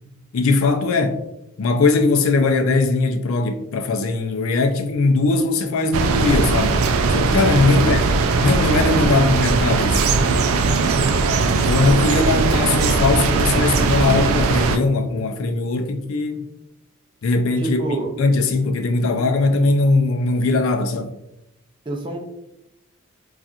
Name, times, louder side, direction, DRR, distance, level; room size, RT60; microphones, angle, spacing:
voice 1, 0.3-1.2 1.6-6.8 7.1-8.0 8.4-10.0 11.5-16.5 17.2-17.8 18.2-21.1, left 3 dB, 90° left, 0.4 m, -20 dB
sound 1, 5.9-14.8, right 4 dB, 90° right, 0.3 m, -19 dB
voice 2, 17.5-18.1 21.9-22.3, right 2 dB, 25° right, 0.5 m, -27 dB
4.1 x 2.4 x 2.4 m
head